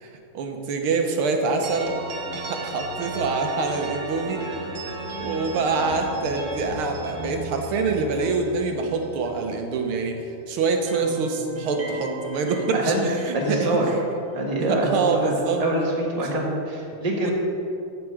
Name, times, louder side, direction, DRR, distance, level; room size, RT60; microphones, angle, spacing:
voice 1, 0.0-1.9 2.3-4.5 5.2-13.7 14.7-15.6 16.9-17.3, right 4 dB, 85° right, 4 dB, 1.8 m, -25 dB
sound 1, 1.6-10.4 10.6-14.8, right 2 dB, 40° right, 1.0 m, -36 dB
voice 2, 12.7-13.0 13.3-13.9 14.3-17.3, right 1 dB, 20° right, -2 dB, 1.3 m, -25 dB
14.0 x 6.0 x 4.8 m, 2.7 s
omnidirectional pair, 2.3 m